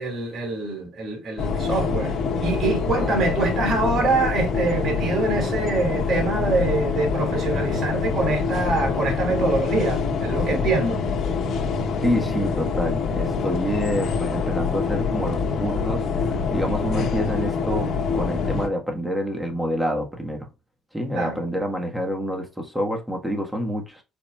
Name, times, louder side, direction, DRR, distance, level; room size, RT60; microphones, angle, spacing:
voice 1, 0.0-2.1 2.4-11.0 21.1-21.4, right 3 dB, 55° right, 2.4 m, -24 dB
sound 1, 1.4-18.7, left 5 dB, 75° left, 0.9 m, -25 dB
voice 2, 12.0-20.5 20.9-24.0, equal, 5° right, 1.4 m, -27 dB
4.8 x 4.4 x 2.3 m
cardioid pair, 90°, 0 cm